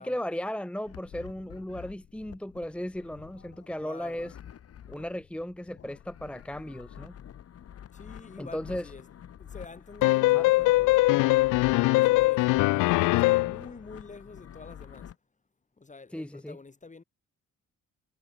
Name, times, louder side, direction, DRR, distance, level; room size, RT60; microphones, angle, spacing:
voice 1, 0.0-4.3 4.9-7.1 8.4-8.9 10.3-10.5 16.1-16.6, equal, 5° left, 1.3 m, -36 dB
sound 1, 0.8-15.1, left 9 dB, 50° left, 1.4 m, -48 dB
voice 2, 3.8-4.3 7.9-9.1 9.4-11.4 11.9-15.1 15.8-17.0, left 3 dB, 25° left, 4.1 m, -47 dB
sound 2, 10.0-13.6, left 21 dB, 90° left, 0.5 m, -22 dB
cardioid pair, 90°, 30 cm